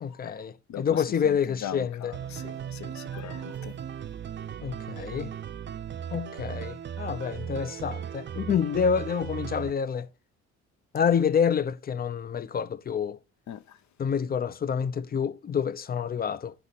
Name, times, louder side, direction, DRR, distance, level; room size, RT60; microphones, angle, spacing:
voice 1, 0.0-2.1 4.6-5.3 6.1-10.1 10.9-13.2 14.0-16.5, left 7 dB, 30° left, 0.5 m, -28 dB
voice 2, 0.7-3.8 13.5-13.8, left 10 dB, 70° left, 0.7 m, -40 dB
sound 1, 2.1-9.7, right 8 dB, 40° right, 0.5 m, -37 dB
10.0 x 4.1 x 4.0 m
cardioid pair, 90°, 30 cm